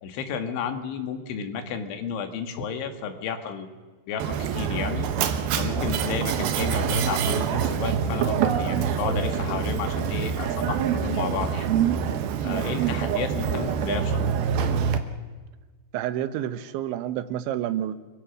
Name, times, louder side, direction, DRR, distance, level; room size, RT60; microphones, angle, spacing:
voice 1, 0.0-3.7 4.1-5.1 5.6-11.7 12.4-14.3, left 6 dB, 90° left, 4.3 m, -32 dB
Mechanisms, 4.2-15.0, right 7 dB, 65° right, 2.8 m, -25 dB
voice 2, 15.9-18.0, right 11 dB, 85° right, 3.4 m, -29 dB
30.0 x 23.5 x 6.2 m
omnidirectional pair, 5.2 m